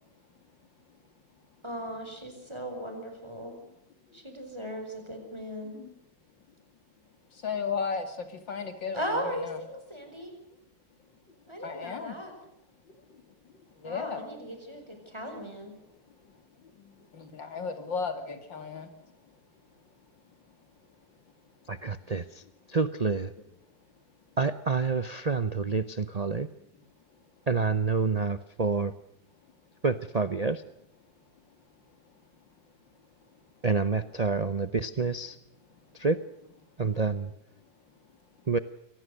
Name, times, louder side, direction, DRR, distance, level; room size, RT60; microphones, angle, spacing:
voice 1, 1.6-3.5 4.1-5.8 8.9-10.3 11.5-12.3 13.8-15.7, equal, 15° right, 5 dB, 5.0 m, -37 dB
voice 2, 7.3-9.6 11.5-12.2 12.9-13.0 13.8-14.2 16.2-18.9, left 5 dB, 75° left, 8 dB, 3.2 m, -35 dB
voice 3, 21.7-22.4 22.7-23.3 24.4-26.5 27.5-28.9 29.8-30.6 33.6-35.4 35.9-36.2 36.8-37.3 38.5-38.6, right 4 dB, 90° right, 13 dB, 0.3 m, -28 dB
24.5 x 18.5 x 6.6 m, 0.79 s
omnidirectional pair, 2.0 m